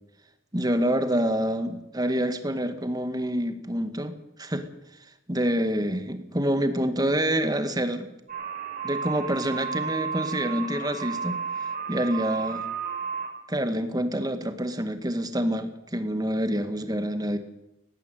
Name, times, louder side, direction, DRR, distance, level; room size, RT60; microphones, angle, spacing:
voice 1, 0.5-4.7 5.3-8.1 8.8-11.4 11.9-12.7 13.5-17.4, equal, 20° right, 9 dB, 1.9 m, -27 dB
sound 1, 8.3-13.3, right 6 dB, 45° right, 5.8 m, -32 dB
18.5 x 15.5 x 9.3 m, 0.87 s
head